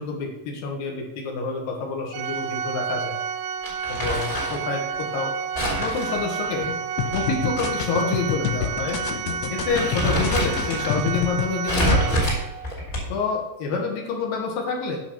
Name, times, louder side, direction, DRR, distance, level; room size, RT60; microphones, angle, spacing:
voice 1, 0.0-3.2 3.9-5.3 5.8-6.7 7.1-9.0 9.5-12.3 13.1-15.0, left 4 dB, 65° left, 1 dB, 2.8 m, -28 dB
Organ, 2.1-12.7, right 7 dB, 85° right, 2.4 m, -30 dB
Crumpling crinkling, 3.6-4.7 5.6-7.6 8.0-8.1 8.9-9.1 9.4-11.0 11.7-13.3, equal, 20° left, 2.7 m, -26 dB
sound 1, 7.0-11.5 11.8-12.2, left 8 dB, 80° left, 2.9 m, -28 dB
8.8 x 5.9 x 5.4 m, 1.0 s
omnidirectional pair, 5.0 m